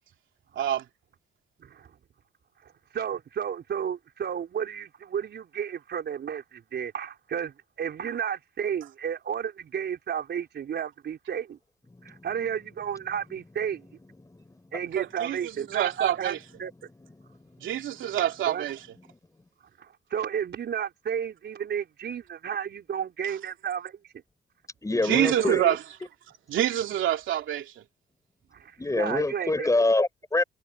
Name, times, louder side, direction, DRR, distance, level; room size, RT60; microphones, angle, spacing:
voice 1, 1.6-1.9 2.6-11.6 12.0-13.8 14.7-16.7 18.5-18.7 19.8-24.0 25.2-25.6 28.5-29.7, right 8 dB, 60° right, 4.6 m, -32 dB
voice 2, 14.2-14.8 17.2-17.6 24.8-25.8 28.8-30.4, left 2 dB, 15° left, 5.7 m, -27 dB
voice 3, 15.0-16.4 17.6-18.8 24.9-25.8 26.5-27.8, right 11 dB, 75° right, 2.8 m, -27 dB
cardioid pair, 90°, 20 cm